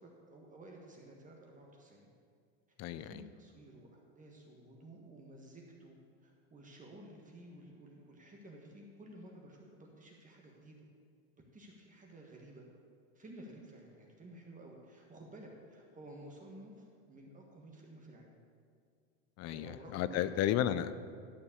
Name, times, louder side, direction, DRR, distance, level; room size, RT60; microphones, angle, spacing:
voice 1, 0.0-2.1 2.9-6.0 6.2-10.8 11.5-12.6 13.1-18.4 19.5-20.3, right 1 dB, 20° right, -1 dB, 1.5 m, -53 dB
voice 2, 2.8-3.1 19.4-20.9, left 11 dB, 45° left, 14 dB, 0.5 m, -33 dB
12.0 x 4.5 x 7.1 m, 2.1 s
supercardioid pair, 110°, 38 cm